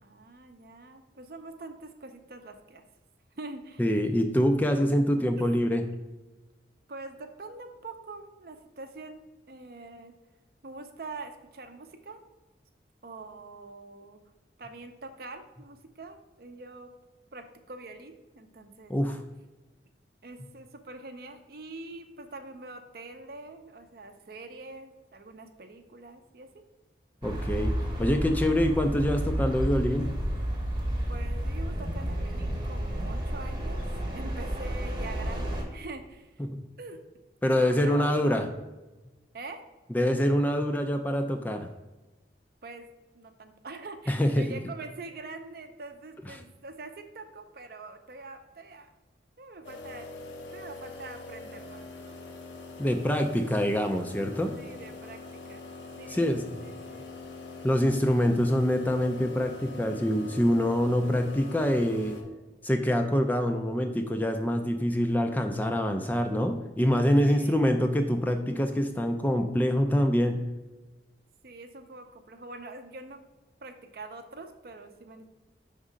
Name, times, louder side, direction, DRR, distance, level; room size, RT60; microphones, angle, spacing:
voice 1, 0.0-2.8 3.4-3.8 5.4-5.6 6.9-10.1 10.6-12.2 13.0-14.2 14.6-16.9 17.3-18.9 20.2-26.6 31.1-33.8 34.1-36.4 36.8-37.0 37.5-38.3 39.3-39.6 42.6-42.9 43.1-48.9 49.4-50.2 50.5-52.2 54.6-55.7 56.0-57.2 61.8-61.9 67.2-67.8 71.4-73.2 73.6-75.3, right 3 dB, 55° right, 7 dB, 0.6 m, -44 dB
voice 2, 3.8-5.8 18.9-19.2 27.2-27.7 28.0-30.1 36.4-36.7 37.4-38.5 39.9-41.7 44.1-44.6 52.8-54.5 56.1-56.4 57.6-62.2 62.6-70.4, equal, 10° left, 5 dB, 0.3 m, -25 dB
sound 1, 27.2-35.6, equal, 25° right, 1.0 m, -31 dB
sound 2, 49.6-62.2, left 3 dB, 90° left, 1.0 m, -43 dB
5.4 x 3.7 x 4.9 m, 1.2 s
head